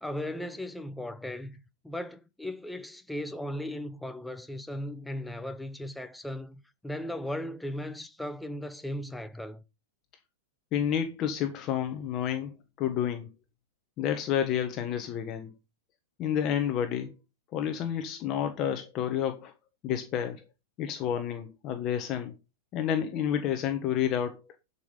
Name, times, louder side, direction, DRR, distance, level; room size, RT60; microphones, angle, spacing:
voice 1, 0.0-9.6, left 1 dB, ahead, 0.8 m, -37 dB
voice 2, 10.7-12.5 12.8-13.3 14.0-15.5 16.2-17.1 17.5-19.5 19.8-20.4 20.8-22.3 22.7-24.4, left 9 dB, 30° left, 1.3 m, -30 dB
12.0 x 5.7 x 5.0 m
supercardioid pair, 160°, 0 cm